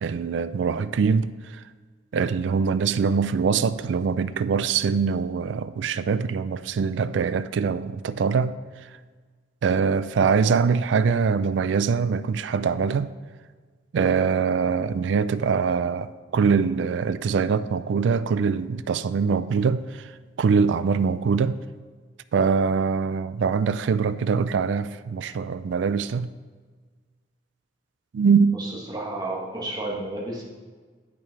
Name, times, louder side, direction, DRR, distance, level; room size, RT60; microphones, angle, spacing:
voice 1, 0.0-1.6 2.1-8.6 8.8-8.9 9.6-13.1 13.9-21.6 22.3-26.3 28.1-28.6, right 5 dB, 70° right, 0.3 m, -23 dB
voice 2, 28.5-30.4, right 2 dB, 20° right, 1.5 m, -32 dB
8.5 x 6.1 x 4.5 m
head